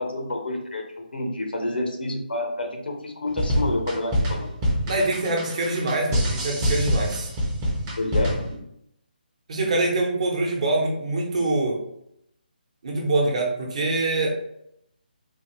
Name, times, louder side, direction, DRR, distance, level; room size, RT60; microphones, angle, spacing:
voice 1, 0.0-4.5 8.0-8.5, left 2 dB, 90° left, 3 dB, 0.9 m, -29 dB
sound 1, 3.3-8.5, equal, 15° right, 0.6 m, -25 dB
voice 2, 4.9-7.3 8.5-8.6 9.5-11.8 12.8-14.3, right 2 dB, 40° right, 0 dB, 0.9 m, -24 dB
4.0 x 2.5 x 3.1 m, 0.77 s
hypercardioid pair, 170°, 5 cm